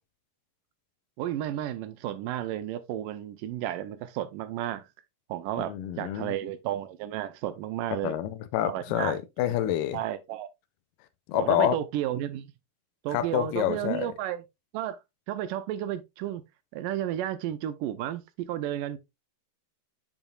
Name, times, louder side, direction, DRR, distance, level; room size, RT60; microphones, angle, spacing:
voice 1, 1.2-4.9 5.3-8.2 8.6-9.2 9.9-10.5 11.3-12.5 13.0-14.4 14.7-15.0 15.3-16.4 16.7-18.2 18.5-19.0, right 12 dB, 85° right, 2.3 m, -32 dB
voice 2, 5.6-6.3 8.0-10.0 11.3-11.8 13.1-14.1, left 12 dB, 80° left, 2.3 m, -28 dB
7.2 x 7.2 x 2.3 m
omnidirectional pair, 3.9 m